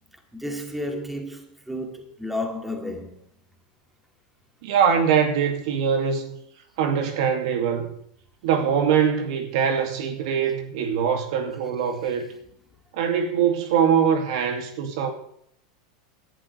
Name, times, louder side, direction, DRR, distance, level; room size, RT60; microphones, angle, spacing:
voice 1, 0.3-3.2 12.0-12.2, left 1 dB, 5° right, 2.4 m, -32 dB
voice 2, 4.6-6.4 6.8-7.9 8.4-12.3 12.9-15.1, right 7 dB, 70° right, 2.6 m, -22 dB
18.0 x 11.5 x 3.4 m
supercardioid pair, 130°, 3 cm